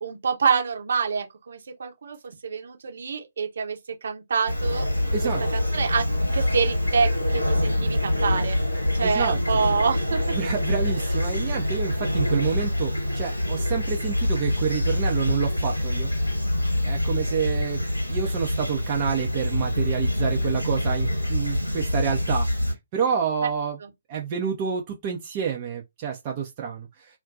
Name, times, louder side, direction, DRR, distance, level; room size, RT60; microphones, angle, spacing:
voice 1, 0.0-2.2 2.4-3.8 4.0-4.9 5.5-8.6 8.9-10.2 23.8-23.9, right 5 dB, 55° right, 0.8 m, -26 dB
Fowl / Chirp tweet, 4.5-22.7, left 1 dB, 85° left, 1.0 m, -25 dB
voice 2, 9.0-9.4 10.3-16.1 16.8-17.8 18.1-22.5 22.9-23.8 24.1-27.1, right 7 dB, 30° right, 0.6 m, -28 dB
2.4 x 2.2 x 3.8 m
figure-of-eight pair, 135°, 0 cm